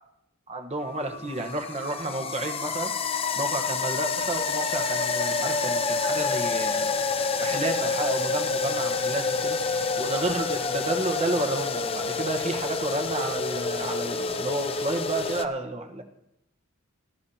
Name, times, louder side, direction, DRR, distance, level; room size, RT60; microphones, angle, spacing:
voice 1, 0.5-2.9 3.4-6.9 7.4-9.6 10.0-16.0, right 2 dB, 30° right, 5 dB, 1.3 m, -31 dB
sound 1, 0.8-15.4, left 4 dB, 25° left, 0.5 m, -28 dB
20.5 x 11.5 x 2.9 m, 0.82 s
head